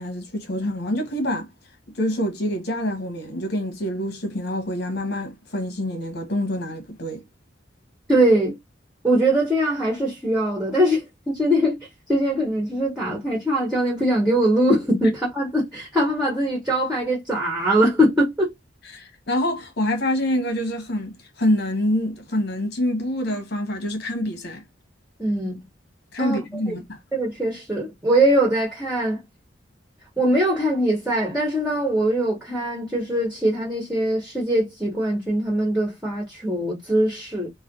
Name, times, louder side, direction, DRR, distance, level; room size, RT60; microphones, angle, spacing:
voice 1, 0.0-1.5 1.9-7.2 18.9-24.6 26.1-27.0, left 1 dB, 60° left, 1.1 m, -26 dB
voice 2, 8.1-8.6 9.0-11.8 12.1-18.5 25.2-25.6 26.2-26.8 27.1-29.2 30.2-37.5, right 1 dB, 5° right, 1.3 m, -22 dB
3.3 x 2.1 x 3.7 m
head